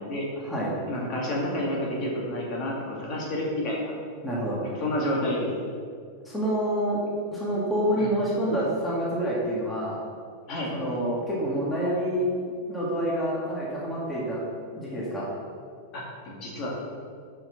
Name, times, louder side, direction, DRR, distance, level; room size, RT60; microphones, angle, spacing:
voice 1, 0.4-0.7 4.2-4.6 6.2-7.0 7.3-10.0 10.7-12.3 12.7-14.4 14.7-15.3, equal, 10° left, -6 dB, 2.0 m, -27 dB
voice 2, 0.9-3.9 4.6-5.5 8.0-8.1 10.5-10.7 15.9-16.7, left 1 dB, 40° left, -3 dB, 2.2 m, -30 dB
6.8 x 5.9 x 6.7 m, 2.1 s
supercardioid pair, 145°, 0 cm